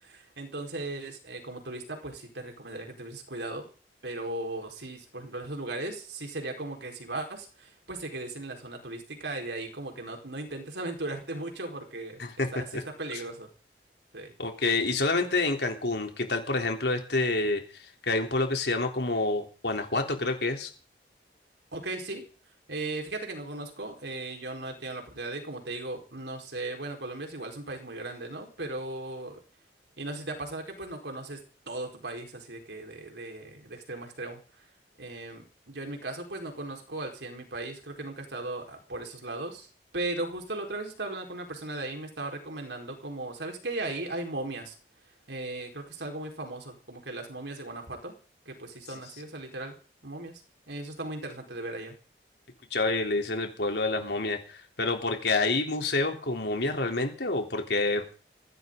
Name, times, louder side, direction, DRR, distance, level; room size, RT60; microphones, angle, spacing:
voice 1, 0.0-3.6 4.0-12.2 12.5-13.5 14.1-14.3 21.7-22.2 22.7-29.4 30.0-31.4 31.7-34.4 35.0-39.7 39.9-44.7 45.3-48.1 48.5-49.8 50.0-50.4 50.7-51.9, right 2 dB, 80° right, 3 dB, 4.5 m, -37 dB
voice 2, 12.2-12.8 13.1-13.2 14.4-20.7 52.7-58.1, left 2 dB, 70° left, 3 dB, 3.5 m, -28 dB
19.5 x 16.5 x 3.9 m, 0.37 s
head